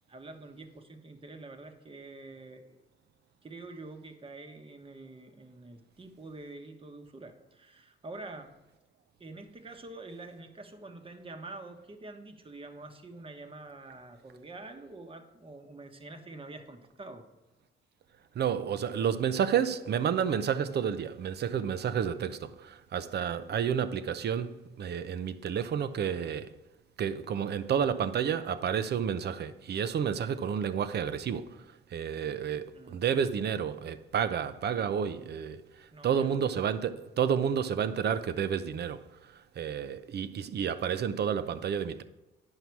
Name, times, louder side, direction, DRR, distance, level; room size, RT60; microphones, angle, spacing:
voice 1, 0.1-2.8 3.4-8.5 9.2-17.3 32.7-33.0 35.9-36.3, right 2 dB, 25° right, 1.2 m, -46 dB
voice 2, 18.3-26.5 27.0-42.0, right 8 dB, 55° right, 0.7 m, -30 dB
9.7 x 5.7 x 4.6 m
cardioid pair, 90°, 20 cm